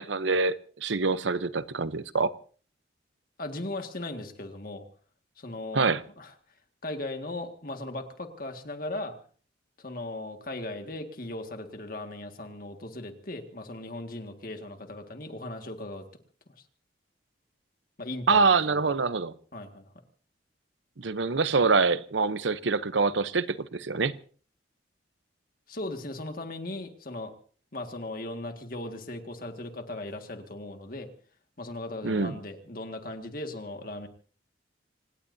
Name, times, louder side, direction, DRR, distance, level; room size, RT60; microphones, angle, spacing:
voice 1, 0.0-2.3 5.7-6.0 18.3-19.3 21.0-24.1 32.0-32.3, right 4 dB, 80° right, 14 dB, 0.8 m, -25 dB
voice 2, 3.4-4.8 5.4-5.9 6.2-6.3 6.8-9.2 9.8-16.0 18.0-18.8 19.5-19.9 25.7-27.3 27.7-31.1 31.6-34.1, left 2 dB, 50° left, 6 dB, 1.9 m, -38 dB
26.5 x 19.0 x 2.7 m, 0.43 s
head